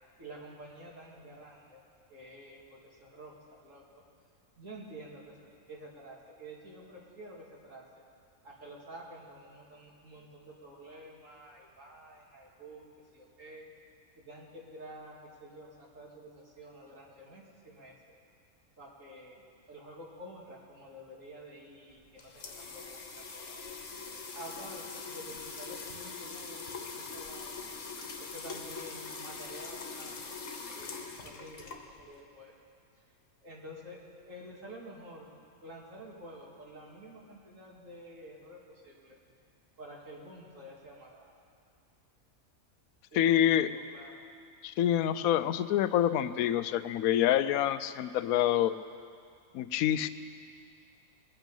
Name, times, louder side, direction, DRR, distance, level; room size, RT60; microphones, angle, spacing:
voice 1, 0.2-1.8 2.1-4.0 4.6-7.8 8.4-13.7 14.2-17.9 18.8-23.6 24.3-27.7 28.2-30.4 30.7-32.5 33.4-35.3 35.6-39.2 39.8-41.3 43.1-44.2, right 1 dB, 65° right, -4 dB, 2.6 m, -49 dB
sound 1, 21.9-32.2, left 4 dB, 65° left, 1.5 m, -43 dB
voice 2, 43.1-43.7 44.6-48.7 49.5-50.1, left 11 dB, 85° left, 13 dB, 1.0 m, -26 dB
21.5 x 9.0 x 5.4 m, 2.3 s
omnidirectional pair, 1.5 m